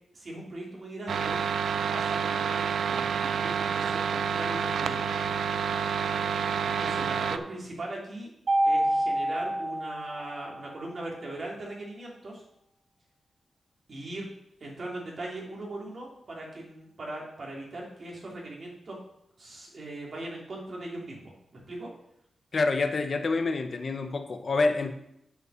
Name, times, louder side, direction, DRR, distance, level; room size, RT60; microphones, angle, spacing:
voice 1, 0.1-1.4 1.8-5.1 6.6-8.3 8.6-12.4 13.9-14.3 14.6-19.0 19.4-21.9, right 2 dB, 50° right, -3 dB, 2.8 m, -39 dB
sound 1, 1.1-7.4, right 7 dB, 85° right, 0.4 m, -28 dB
Mallet percussion, 8.5-10.7, right 1 dB, 65° right, 1.0 m, -27 dB
voice 2, 22.5-24.9, left 3 dB, 45° left, 7 dB, 0.8 m, -27 dB
7.9 x 5.4 x 6.2 m, 0.78 s
wide cardioid pair, 120°, 0 cm